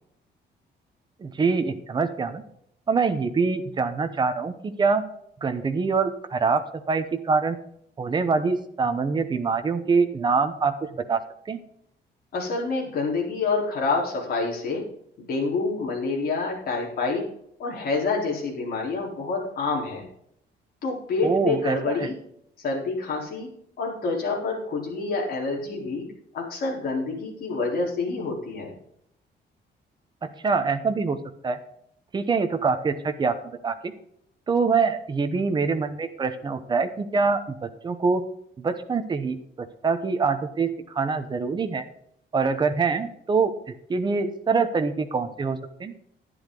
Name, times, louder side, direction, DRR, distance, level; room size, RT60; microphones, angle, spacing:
voice 1, 1.2-2.4 2.9-5.0 5.4-7.6 8.0-11.2 11.5-11.6 21.2-22.1 30.2-31.2 31.4-31.6 32.1-33.4 33.6-33.9 34.5-38.2 38.6-41.8 42.3-43.5 43.9-45.9, right 4 dB, 25° right, 8 dB, 0.9 m, -25 dB
voice 2, 12.3-14.8 15.2-17.3 17.6-20.1 20.8-22.1 22.6-23.5 23.8-26.1 26.3-28.7, left 3 dB, 55° left, -2 dB, 4.0 m, -27 dB
11.0 x 10.5 x 3.9 m, 0.72 s
cardioid pair, 175°, 19 cm